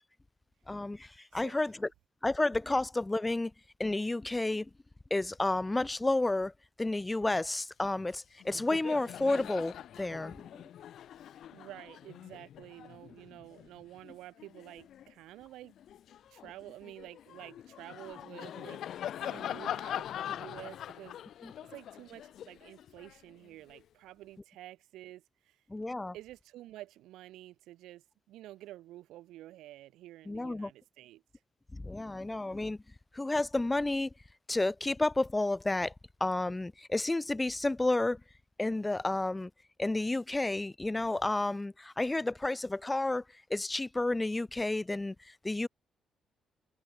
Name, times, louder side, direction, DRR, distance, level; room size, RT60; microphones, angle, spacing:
voice 1, 0.7-1.9 2.2-3.5 3.8-4.7 5.1-6.5 6.8-10.4 21.4-21.5 25.7-26.1 30.3-30.7 31.7-32.8 33.1-34.1 34.5-35.9 36.2-38.2 38.6-39.5 39.8-43.2 43.5-45.7, left 2 dB, 15° left, 0.5 m, -31 dB
Laughter, 8.0-8.1 8.4-15.1 15.6-23.8, left 10 dB, 70° left, 3.0 m, -43 dB
voice 2, 11.5-15.7 16.3-18.8 19.2-21.1 21.6-25.6 26.1-31.2, right 15 dB, 90° right, 2.0 m, -50 dB
cardioid pair, 90°, 0 cm